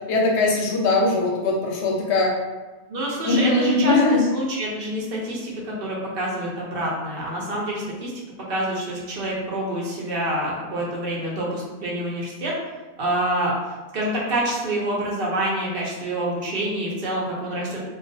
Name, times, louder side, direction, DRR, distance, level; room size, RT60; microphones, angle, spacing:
voice 1, 0.1-2.3 3.2-4.3, left 2 dB, 90° left, -1 dB, 0.9 m, -20 dB
voice 2, 2.9-8.1 8.5-12.5 13.0-13.5 13.9-17.8, right 1 dB, 65° right, -4 dB, 0.8 m, -27 dB
2.3 x 2.2 x 2.5 m, 1.2 s
omnidirectional pair, 1.1 m